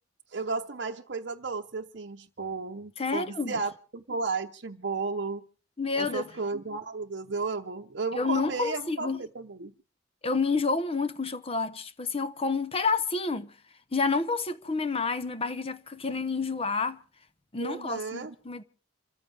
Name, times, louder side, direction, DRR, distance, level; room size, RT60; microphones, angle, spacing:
voice 1, 0.3-5.4 6.0-9.7 17.6-18.3, right 4 dB, 60° right, 0.8 m, -34 dB
voice 2, 3.0-3.6 5.8-6.3 8.1-9.2 10.2-13.5 13.9-17.0 17.5-18.6, left 4 dB, 30° left, 0.9 m, -29 dB
28.0 x 14.5 x 3.4 m
head